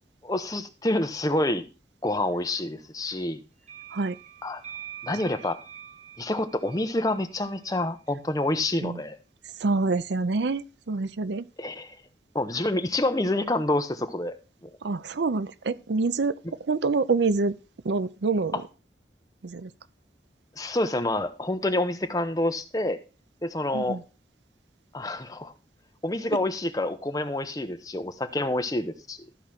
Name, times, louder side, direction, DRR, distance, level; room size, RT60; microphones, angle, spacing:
voice 1, 0.2-1.6 2.0-3.4 4.4-4.6 5.0-5.6 6.2-9.2 11.6-11.9 12.3-14.3 14.6-14.7 18.5-18.6 20.6-23.0 23.4-24.0 24.9-25.5 26.0-29.2, left 1 dB, 20° left, 0.9 m, -27 dB
sound 1, 3.6-8.1, right 9 dB, 40° right, 1.7 m, -45 dB
voice 2, 9.6-11.5 14.8-16.4 16.7-17.5 17.8-18.5 19.4-19.7 23.7-24.0, right 3 dB, 80° right, 0.6 m, -26 dB
14.0 x 5.0 x 5.9 m
head